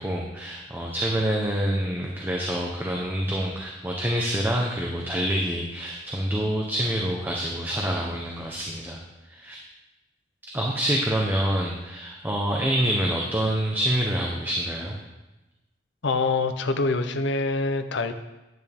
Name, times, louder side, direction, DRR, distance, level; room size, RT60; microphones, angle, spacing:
voice 1, 0.0-9.0 9.2-9.6 10.5-15.0, equal, 10° right, -2 dB, 1.0 m, -26 dB
voice 2, 16.0-18.1, left 3 dB, 65° left, 9 dB, 0.8 m, -25 dB
10.5 x 9.4 x 3.6 m, 1.0 s
head